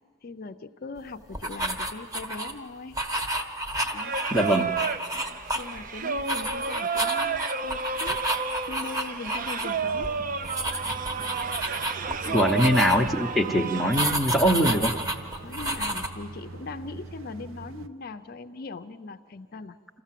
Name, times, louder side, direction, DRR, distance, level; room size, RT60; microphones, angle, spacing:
voice 1, 0.2-3.0 3.9-4.2 5.1-8.2 8.7-10.2 10.9-11.0 12.1-12.8 15.4-19.8, left 3 dB, 45° left, 8 dB, 0.5 m, -40 dB
sound 1, 1.3-2.5 2.9-5.9 6.2-9.7 9.9-10.1 10.4-13.2 13.9-16.1, right 1 dB, 15° right, 1.2 m, -30 dB
Singing, 3.9-14.1, right 5 dB, 40° right, 0.5 m, -31 dB
voice 2, 4.3-4.7 10.8-10.9 12.3-14.9, equal, ahead, 1 dB, 0.8 m, -22 dB
sound 2, 9.7-17.9, right 3 dB, 75° right, 0.7 m, -43 dB
27.0 x 14.5 x 7.5 m, 2.3 s
head